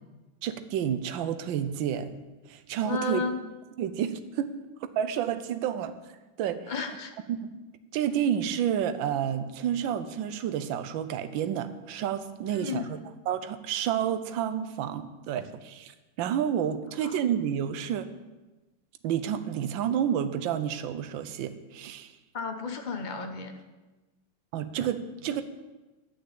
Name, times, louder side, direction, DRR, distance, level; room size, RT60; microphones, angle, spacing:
voice 1, 0.4-3.2 3.8-4.5 5.0-6.0 6.4-6.7 7.3-7.5 7.9-12.9 13.3-18.1 19.0-22.1 24.5-25.4, right 9 dB, 70° right, 11 dB, 1.4 m, -30 dB
voice 2, 2.8-3.4 6.7-7.1 12.5-12.9 17.0-17.1 22.3-23.5, left 4 dB, 45° left, 5 dB, 0.5 m, -32 dB
11.0 x 5.9 x 8.6 m, 1.1 s
omnidirectional pair, 2.3 m